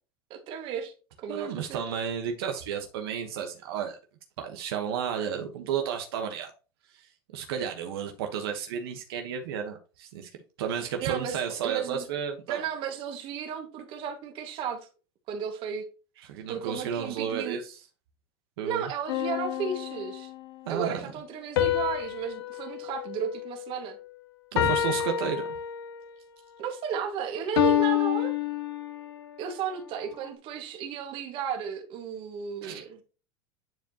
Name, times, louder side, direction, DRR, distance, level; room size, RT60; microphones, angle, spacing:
voice 1, 0.3-1.9 11.0-12.1 12.5-14.9 15.3-15.9 16.5-17.6 18.6-20.3 20.7-24.0 26.6-28.3 29.4-33.0, right 7 dB, 45° right, 1.9 m, -34 dB
voice 2, 1.3-4.0 4.4-6.5 6.9-7.1 7.3-10.3 10.6-12.7 16.2-17.8 18.6-18.9 20.6-21.0 24.5-25.4 32.6-32.8, right 8 dB, 75° right, 1.3 m, -32 dB
sound 1, 19.1-20.5 21.6-24.0 24.6-26.1 27.6-29.2, left 11 dB, 85° left, 1.3 m, -28 dB
10.0 x 4.7 x 2.9 m
supercardioid pair, 145°, 13 cm